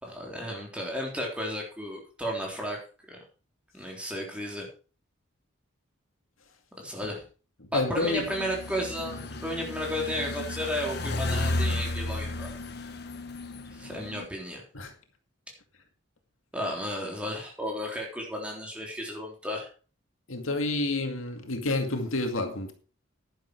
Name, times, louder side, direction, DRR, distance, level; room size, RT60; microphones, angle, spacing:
voice 1, 0.0-2.8 3.1-3.2 3.7-4.7 6.8-7.2 7.7-12.5 13.7-14.6 16.5-19.7, equal, 5° right, 3.7 m, -33 dB
voice 2, 7.6-8.3 14.7-14.9 20.3-22.7, left 2 dB, 85° left, 2.2 m, -29 dB
sound 1, 8.0-14.2, left 2 dB, 50° left, 1.4 m, -33 dB
10.5 x 10.5 x 4.7 m
head